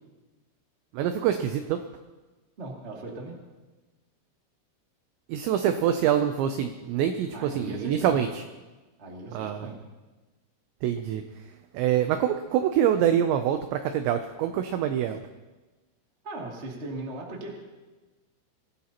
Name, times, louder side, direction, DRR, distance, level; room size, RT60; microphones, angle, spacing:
voice 1, 0.9-1.8 5.3-8.3 9.3-9.7 10.8-11.2 11.7-15.2, right 10 dB, 90° right, 7 dB, 2.5 m, -25 dB
voice 2, 2.6-3.4 7.3-8.2 9.0-9.8 16.2-17.7, right 2 dB, 45° right, -2 dB, 0.8 m, -38 dB
25.0 x 16.5 x 2.9 m, 1.2 s
omnidirectional pair, 6.0 m